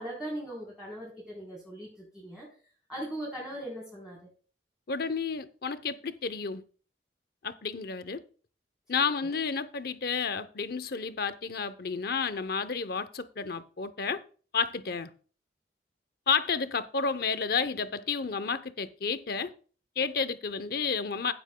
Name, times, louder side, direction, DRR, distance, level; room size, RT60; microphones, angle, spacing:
voice 1, 0.0-2.5 2.9-4.3 9.2-9.4, right 1 dB, 5° right, 3.8 m, -39 dB
voice 2, 4.9-6.6 7.4-8.2 8.9-14.2 14.5-15.1 16.3-19.5 20.0-21.3, left 5 dB, 55° left, 0.7 m, -31 dB
16.0 x 7.9 x 2.2 m
head